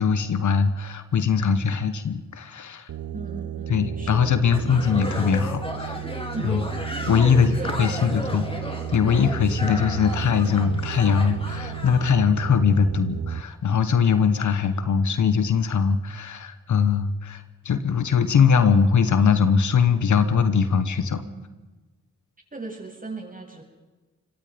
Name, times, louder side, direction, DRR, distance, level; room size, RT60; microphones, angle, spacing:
voice 1, 0.0-2.9 3.7-6.0 6.4-6.6 7.1-8.4 8.9-21.2, left 6 dB, 80° left, 11 dB, 1.5 m, -21 dB
sound 1, 2.9-13.4, right 10 dB, 85° right, 1.0 m, -34 dB
voice 2, 3.1-4.3 6.3-6.6 7.3-8.5 21.2-21.6 22.5-23.6, right 2 dB, 30° right, 1 dB, 7.9 m, -37 dB
sound 2, 4.5-12.1, left 1 dB, 20° left, 4.6 m, -35 dB
25.5 x 21.5 x 5.4 m, 1.2 s
supercardioid pair, 40°, 29 cm